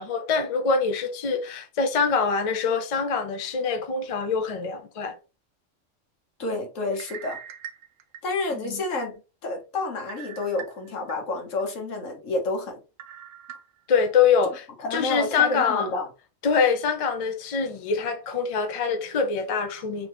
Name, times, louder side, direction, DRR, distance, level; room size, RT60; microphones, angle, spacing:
voice 1, 0.0-5.1 8.5-8.8 13.9-15.9 16.4-20.1, left 5 dB, 50° left, 0.4 m, -24 dB
voice 2, 6.4-7.4 8.2-9.1 9.4-12.8 14.8-16.1, left 2 dB, 75° left, 1.4 m, -29 dB
sound 1, 6.9-8.7 9.1-9.2 10.1-11.1 11.6-11.7 13.0-14.0 14.5-14.6 15.4-15.6, right 9 dB, 75° right, 1.0 m, -42 dB
3.8 x 2.9 x 3.3 m
omnidirectional pair, 1.3 m